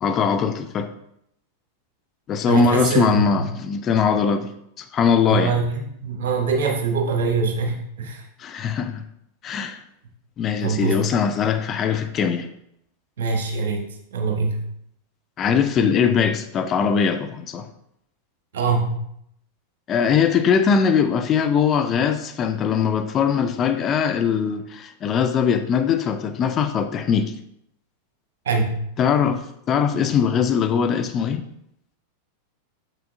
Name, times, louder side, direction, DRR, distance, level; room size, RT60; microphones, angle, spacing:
voice 1, 0.0-0.9 2.3-4.5 4.8-5.6 8.4-9.0 9.4-9.8 10.4-12.5 15.4-17.7 19.9-27.3 29.0-31.4, left 6 dB, 30° left, 9 dB, 0.4 m, -21 dB
voice 2, 2.5-3.4 5.3-8.2 10.6-11.0 13.2-13.8 14.1-14.6 18.5-19.0 28.4-28.8, right 4 dB, 60° right, 2 dB, 1.3 m, -23 dB
6.8 x 5.9 x 2.6 m, 0.74 s
figure-of-eight pair, 90°, 0 cm